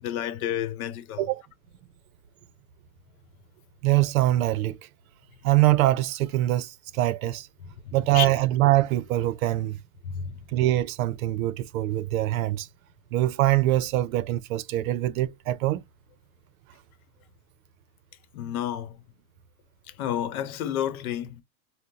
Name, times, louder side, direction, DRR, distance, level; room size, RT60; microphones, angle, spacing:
voice 1, 0.0-1.2 7.6-8.3 10.0-10.4 18.3-19.0 19.9-21.4, left 10 dB, 85° left, 0.8 m, -31 dB
voice 2, 3.8-4.8 5.4-7.5 7.9-9.8 10.5-12.7 13.1-15.8, right 15 dB, 75° right, 0.6 m, -23 dB
3.8 x 2.1 x 2.7 m
supercardioid pair, 160°, 42 cm